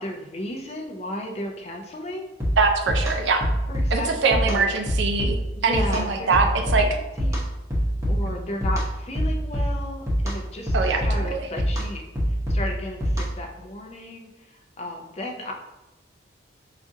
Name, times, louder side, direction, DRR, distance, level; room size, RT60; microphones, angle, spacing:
voice 1, 0.0-2.3 3.7-4.6 5.6-7.4 8.1-12.0 12.3-15.5, left 1 dB, 35° left, 1 dB, 0.4 m, -34 dB
sound 1, 2.4-13.5, equal, 15° right, 0.8 m, -26 dB
voice 2, 2.6-3.5 3.9-5.4 5.6-6.5 6.7-6.9 8.2-8.4 10.7-11.4, right 4 dB, 70° right, 4 dB, 0.5 m, -23 dB
4.9 x 2.4 x 2.6 m, 0.99 s
head